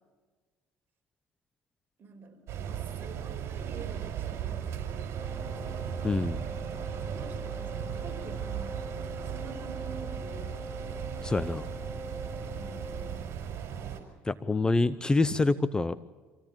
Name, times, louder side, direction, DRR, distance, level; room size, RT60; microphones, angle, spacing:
voice 1, 2.0-6.0 7.1-11.1 12.6-13.1 15.4-15.5, right 4 dB, 40° right, 3 dB, 5.4 m, -48 dB
sound 1, 2.5-14.0, right 9 dB, 55° right, 5.0 m, -37 dB
Wind instrument woodwind instrument, 5.1-13.3, left 2 dB, ahead, 0.9 m, -44 dB
voice 2, 6.0-6.4 11.2-11.7 14.2-16.0, left 3 dB, 15° left, 15 dB, 0.7 m, -26 dB
25.5 x 16.0 x 8.9 m, 1.4 s
supercardioid pair, 90°, 5 cm